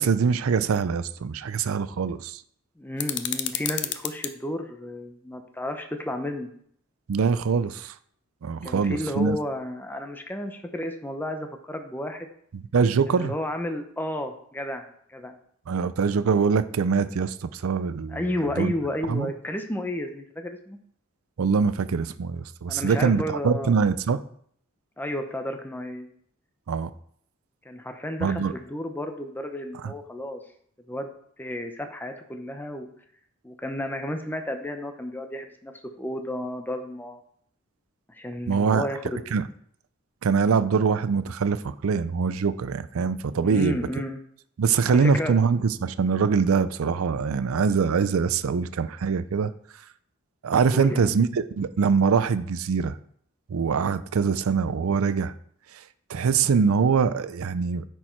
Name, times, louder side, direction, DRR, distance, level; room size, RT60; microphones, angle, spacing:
voice 1, 0.0-2.4 7.1-7.9 8.4-9.4 12.7-13.3 15.7-18.2 18.6-18.7 19.1-19.3 21.4-24.2 26.7-26.9 28.2-28.5 29.8-29.9 38.5-38.8 39.3-39.4 40.2-43.8 44.6-49.5 50.4-53.0 53.5-55.3 56.1-57.8, right 5 dB, 85° right, 0.4 m, -23 dB
voice 2, 2.8-6.5 8.6-12.3 13.1-15.3 18.1-20.8 22.7-23.8 25.0-26.1 27.6-30.4 30.9-31.1 31.4-32.9 33.4-37.2 38.1-39.2 43.4-44.2 44.9-45.3 50.7-51.2, left 1 dB, 10° left, 0.7 m, -32 dB
sound 1, 3.0-4.3, left 11 dB, 55° left, 0.6 m, -30 dB
9.9 x 4.6 x 4.4 m
head